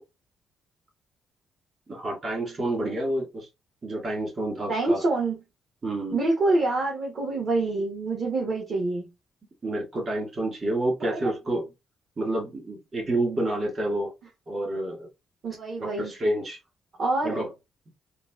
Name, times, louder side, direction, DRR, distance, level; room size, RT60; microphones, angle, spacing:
voice 1, 1.9-3.5 3.8-5.1 5.8-6.2 9.6-11.7 12.2-14.1 14.5-15.1 15.8-16.6 17.2-17.5, right 1 dB, 40° right, 2.1 m, -29 dB
voice 2, 4.7-5.4 6.1-9.0 11.0-11.3 15.4-16.1 17.0-17.4, right 2 dB, 55° right, 1.1 m, -26 dB
3.9 x 2.1 x 2.4 m
cardioid pair, 90°, 0 cm